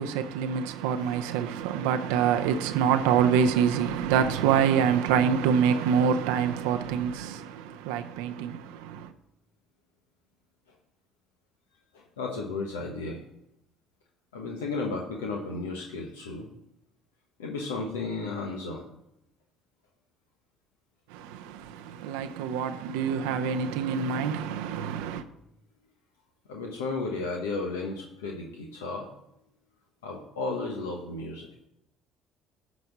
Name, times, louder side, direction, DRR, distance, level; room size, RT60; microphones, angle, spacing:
voice 1, 0.0-9.1 21.1-25.2, right 7 dB, 80° right, 0.5 m, -26 dB
voice 2, 1.0-1.5 11.9-13.2 14.3-16.5 17.4-18.8 26.5-29.1 30.0-31.5, left 3 dB, 90° left, 1.1 m, -34 dB
12.0 x 4.2 x 6.0 m
hypercardioid pair, 60°, 0 cm